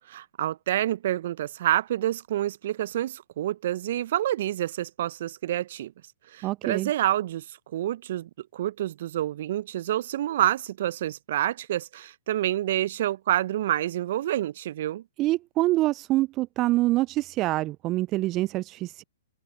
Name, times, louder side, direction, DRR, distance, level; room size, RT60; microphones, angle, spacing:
voice 1, 0.1-5.9 6.3-7.4 7.7-15.0, right 12 dB, 55° right, 0.8 m, -28 dB
voice 2, 6.4-6.9 15.2-19.0, right 18 dB, 30° right, 0.4 m, -25 dB
open air
figure-of-eight pair, 115°, 0 cm